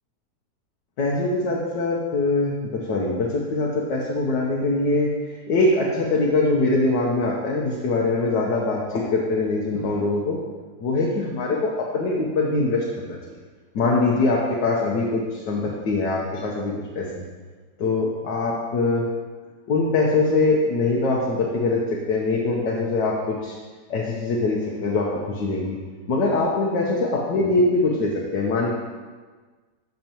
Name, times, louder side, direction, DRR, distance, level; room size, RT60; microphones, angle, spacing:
voice 1, 1.0-10.4 10.8-13.2 13.7-17.3 17.8-19.1 19.7-23.6 23.9-25.8 26.1-28.7, left 3 dB, 80° left, -3 dB, 1.6 m, -23 dB
12.0 x 6.6 x 3.0 m, 1.4 s
omnidirectional pair, 1.8 m